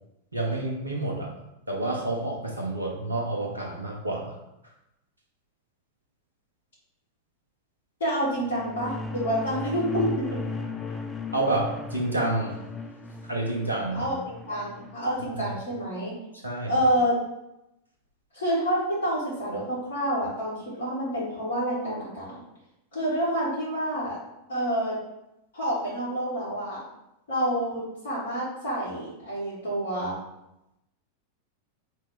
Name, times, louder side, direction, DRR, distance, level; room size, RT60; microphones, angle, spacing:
voice 1, 0.3-1.3 1.7-4.3 11.3-12.5 13.2-14.1 15.3-15.5 16.4-16.8, right 2 dB, 80° right, -2 dB, 0.9 m, -29 dB
voice 2, 8.0-10.3 13.9-16.1 16.7-17.2 18.3-22.4 22.9-24.2 24.5-25.0 25.5-26.8 27.3-30.2, equal, 65° left, -8 dB, 1.6 m, -28 dB
sound 1, 8.3-15.0, left 3 dB, 10° left, 0.4 m, -36 dB
4.1 x 3.3 x 3.5 m, 0.88 s
figure-of-eight pair, 90°, 0 cm